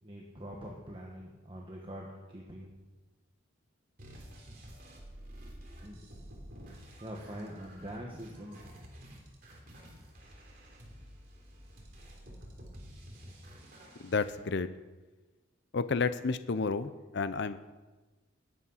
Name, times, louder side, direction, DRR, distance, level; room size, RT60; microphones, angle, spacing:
voice 1, 0.0-2.7 5.8-6.0 7.0-8.6, equal, 25° right, -2 dB, 1.5 m, -44 dB
sound 1, 4.0-14.3, equal, 45° right, 3.1 m, -50 dB
voice 2, 14.0-14.7 15.7-17.6, left 4 dB, 55° left, 13 dB, 0.5 m, -31 dB
20.0 x 8.4 x 5.7 m, 1.2 s
head